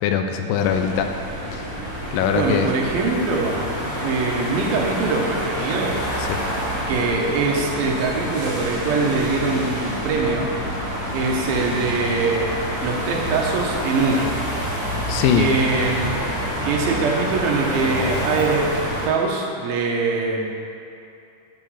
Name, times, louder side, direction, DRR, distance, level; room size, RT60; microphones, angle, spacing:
voice 1, 0.0-1.1 1.5-1.7 2.1-2.7 6.2-6.4 15.1-15.5, left 8 dB, 80° left, 6 dB, 2.2 m, -22 dB
sound 1, 0.6-19.1, equal, 40° left, 1.8 m, -27 dB
voice 2, 2.3-3.6 4.0-6.0 6.9-10.5 11.1-14.3 15.4-16.1 16.6-20.5, right 3 dB, 85° right, -1 dB, 2.8 m, -23 dB
9.0 x 4.9 x 5.6 m, 2.7 s
omnidirectional pair, 4.1 m